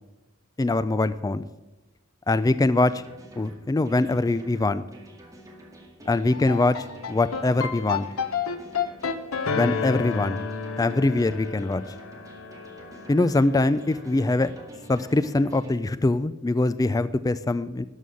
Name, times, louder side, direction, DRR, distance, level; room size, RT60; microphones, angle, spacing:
voice 1, 0.6-1.5 2.3-3.0 3.4-4.8 6.1-8.1 9.5-10.4 10.8-11.8 13.1-14.5 14.9-17.8, left 2 dB, 15° left, 14 dB, 0.3 m, -23 dB
sound 1, 2.8-15.8, right 1 dB, 15° right, 2.0 m, -48 dB
sound 2, 6.2-14.5, left 5 dB, 90° left, 0.9 m, -31 dB
13.0 x 5.5 x 7.6 m, 1.0 s
head